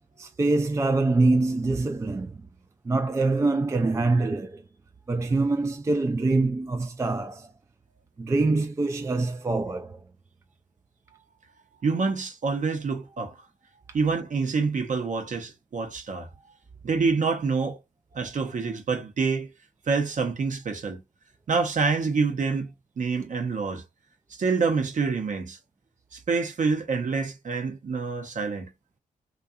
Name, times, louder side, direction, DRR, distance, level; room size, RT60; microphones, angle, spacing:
voice 1, 0.2-2.5 2.8-4.6 5.1-7.5 8.2-10.0, right 3 dB, 20° right, 0.3 m, -24 dB
voice 2, 11.8-13.4 13.9-16.3 16.8-17.8 18.1-19.5 19.9-21.0 21.5-23.8 24.3-25.6 26.1-28.7, right 4 dB, 55° right, 0.7 m, -27 dB
2.6 x 2.3 x 2.3 m
supercardioid pair, 50°, 16 cm